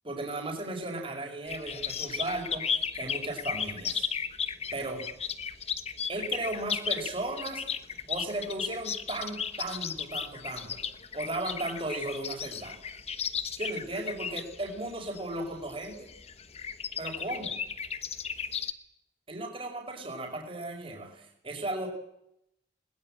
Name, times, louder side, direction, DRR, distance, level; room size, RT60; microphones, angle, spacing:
voice 1, 0.0-4.1 4.7-5.0 6.1-7.6 8.1-10.8 11.1-12.8 13.6-16.1 17.0-17.5 19.3-21.9, right 2 dB, 30° right, 2 dB, 5.3 m, -36 dB
sound 1, 1.5-18.7, left 7 dB, 35° left, 1.1 m, -35 dB
21.5 x 20.5 x 8.8 m, 0.80 s
head